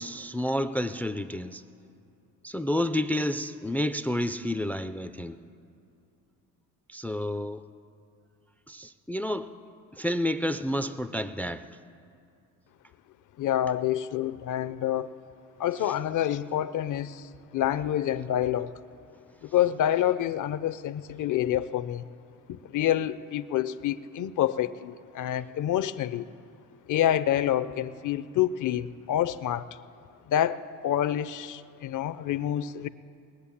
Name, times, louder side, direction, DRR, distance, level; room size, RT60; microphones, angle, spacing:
voice 1, 0.0-1.6 2.4-5.4 6.9-7.7 8.7-9.5 9.9-11.7 15.9-16.0, left 1 dB, 5° left, 13 dB, 0.3 m, -30 dB
voice 2, 13.4-15.1 15.6-18.8 19.4-22.0 22.5-26.3 26.9-29.7 30.3-32.9, left 11 dB, 50° left, 14 dB, 0.6 m, -27 dB
20.0 x 8.3 x 7.2 m, 2.5 s
supercardioid pair, 90°, 39 cm